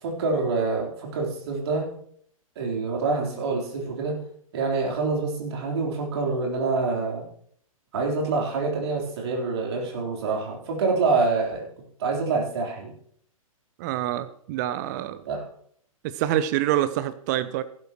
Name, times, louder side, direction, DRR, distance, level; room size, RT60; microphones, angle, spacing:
voice 1, 0.0-1.9 2.6-4.2 4.5-7.3 7.9-11.7 12.0-12.9 15.3-15.4, right 3 dB, 50° right, 0 dB, 3.8 m, -26 dB
voice 2, 13.8-15.2 16.0-17.6, right 12 dB, 30° right, 13 dB, 0.7 m, -26 dB
15.0 x 12.0 x 3.1 m, 0.63 s
figure-of-eight pair, 115°, 18 cm